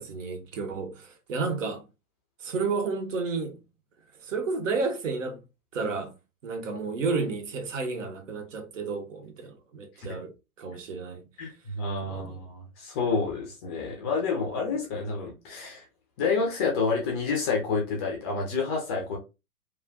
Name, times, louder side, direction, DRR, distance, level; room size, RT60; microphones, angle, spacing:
voice 1, 0.0-1.8 2.4-3.6 4.2-5.4 5.7-6.1 6.4-11.2 12.1-12.4, right 4 dB, 55° right, 0.8 m, -31 dB
voice 2, 11.4-15.8 16.2-19.2, left 4 dB, 20° left, 0.5 m, -29 dB
3.2 x 2.3 x 2.5 m
figure-of-eight pair, 105°, 44 cm